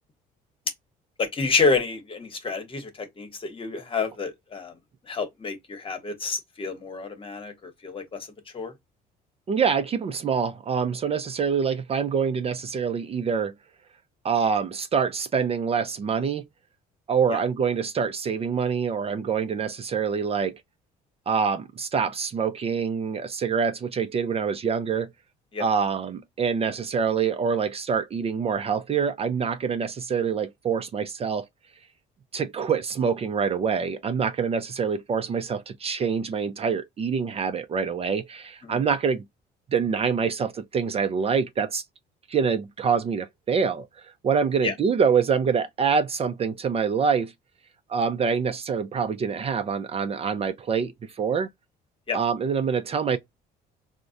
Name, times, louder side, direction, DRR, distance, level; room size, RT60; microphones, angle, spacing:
voice 1, 1.2-4.7 5.1-8.3 8.5-8.7 17.3-17.4 25.5-25.6 38.6-38.8 44.6-44.7 52.1-52.2, left 4 dB, 30° left, 1.0 m, -28 dB
voice 2, 9.5-13.5 14.2-16.5 17.1-20.6 21.3-25.1 25.6-31.5 32.3-39.2 39.7-41.8 42.3-47.3 47.9-51.5 52.1-53.2, right 6 dB, 35° right, 0.5 m, -25 dB
4.5 x 2.1 x 2.6 m
cardioid pair, 110°, 17 cm